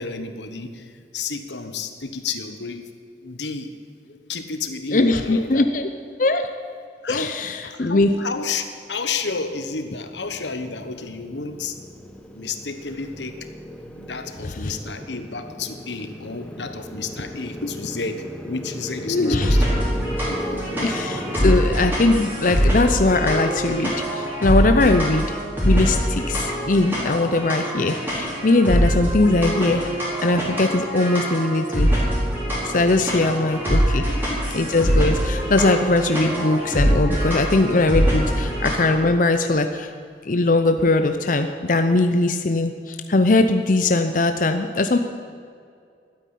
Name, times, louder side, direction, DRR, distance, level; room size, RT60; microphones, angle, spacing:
voice 1, 0.0-2.9 3.2-3.7 4.3-5.7 7.0-11.8 12.3-13.4 14.0-19.9 20.3-21.1 21.4-21.6 32.9-33.1 34.0-34.4, left 4 dB, 85° left, 8 dB, 1.3 m, -31 dB
voice 2, 4.9-5.9 6.2-6.5 7.1-8.1 14.6-14.7 19.1-19.5 20.8-29.9 30.2-31.9 32.6-34.0 34.5-39.9 40.2-45.0, left 2 dB, 45° left, 7 dB, 0.7 m, -20 dB
Motorcycle, 9.0-21.7, equal, 5° left, 1.1 m, -36 dB
sound 1, 19.2-38.9, equal, 10° right, 4.8 m, -23 dB
12.5 x 9.3 x 10.0 m, 2.3 s
head